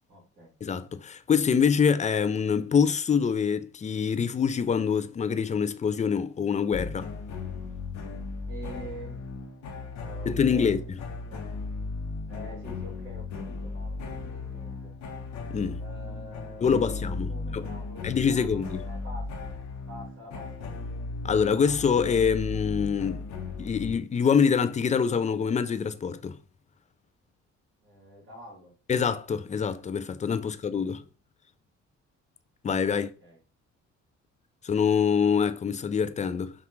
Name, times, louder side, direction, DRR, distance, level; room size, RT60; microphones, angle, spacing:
voice 1, 0.1-0.5 8.5-9.3 10.0-10.8 11.3-11.5 12.3-15.0 15.8-19.3 19.9-20.8 27.8-28.7 30.4-30.6 30.8-30.9 32.9-33.4, equal, 40° right, 2.2 m, -46 dB
voice 2, 0.6-7.1 10.3-10.8 15.5-15.8 16.6-17.6 18.0-18.8 21.2-23.3 23.6-26.4 28.9-31.0 32.6-33.1 34.6-36.5, left 6 dB, 25° left, 0.3 m, -25 dB
sound 1, 6.7-24.0, left 3 dB, 65° left, 0.9 m, -36 dB
5.7 x 2.4 x 3.0 m
cardioid pair, 90°, 30 cm